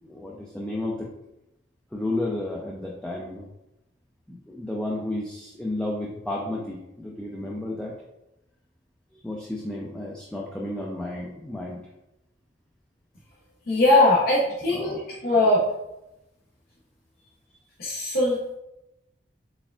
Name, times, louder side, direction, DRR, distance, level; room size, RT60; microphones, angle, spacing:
voice 1, 0.0-1.1 1.9-3.5 4.3-7.9 9.1-11.8 14.2-14.3 14.7-15.0, left 1 dB, 5° left, -3 dB, 0.3 m, -32 dB
voice 2, 13.7-15.6 17.8-18.5, left 2 dB, 55° left, -5 dB, 0.7 m, -21 dB
4.2 x 3.4 x 2.3 m, 0.91 s
head